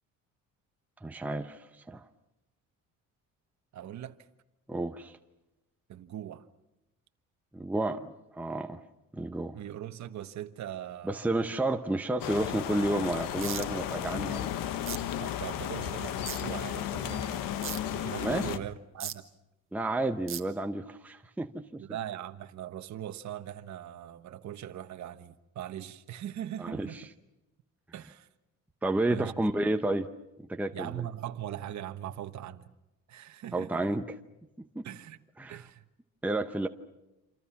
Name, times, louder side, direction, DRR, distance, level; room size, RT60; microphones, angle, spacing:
voice 1, 1.0-1.6 1.9-2.0 4.7-5.1 7.5-8.8 9.1-9.6 11.0-14.5 18.2-18.5 19.7-21.8 26.6-26.9 28.8-30.1 30.5-31.1 33.5-34.0 34.8-34.9 35.4-35.6 36.2-36.7, right 2 dB, 5° right, 0.8 m, -31 dB
voice 2, 3.7-4.2 5.9-6.4 9.5-11.5 15.2-17.5 17.9-19.2 21.8-27.1 27.9-28.3 29.1-29.5 30.7-32.6 33.1-34.0 34.8-35.2 35.5-35.8, right 11 dB, 55° right, 1.3 m, -40 dB
sound 1, 12.2-18.6, left 11 dB, 80° left, 1.3 m, -34 dB
sound 2, 13.4-13.6 14.9-15.0 16.3-16.4 17.6-17.8 19.0-19.1 20.3-20.4, right 9 dB, 40° right, 1.6 m, -35 dB
28.0 x 27.0 x 5.9 m
cardioid pair, 145°, 33 cm